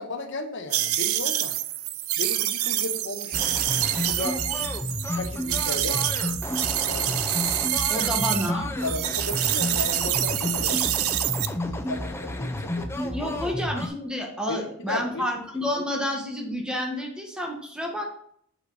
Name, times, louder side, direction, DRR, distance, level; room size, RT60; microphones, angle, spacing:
voice 1, 0.0-1.5 2.2-3.4 4.1-4.4 5.1-6.0 6.8-7.2 8.0-8.1 8.8-11.4 11.7-13.3 14.5-15.3, left 2 dB, 55° left, 5 dB, 1.2 m, -35 dB
sound 1, 0.7-8.5 8.8-11.5, right 13 dB, 80° right, 0.6 m, -27 dB
sound 2, 3.3-13.9, left 1 dB, 10° left, 0.5 m, -31 dB
voice 2, 7.9-8.7 13.1-18.1, equal, 5° right, 0 dB, 1.4 m, -29 dB
7.0 x 5.9 x 4.0 m, 0.65 s
head